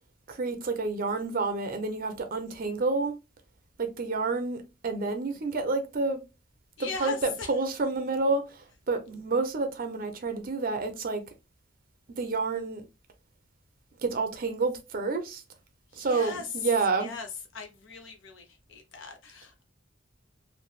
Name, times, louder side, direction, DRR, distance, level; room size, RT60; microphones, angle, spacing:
voice 1, 0.3-3.1 3.8-6.2 6.8-11.2 12.2-12.9 14.0-15.4 16.0-17.1, right 3 dB, 50° right, 0.5 m, -29 dB
voice 2, 6.8-7.5 15.9-16.7 17.0-17.3 17.5-19.6, left 5 dB, 85° left, 0.6 m, -39 dB
3.1 x 2.1 x 2.3 m
head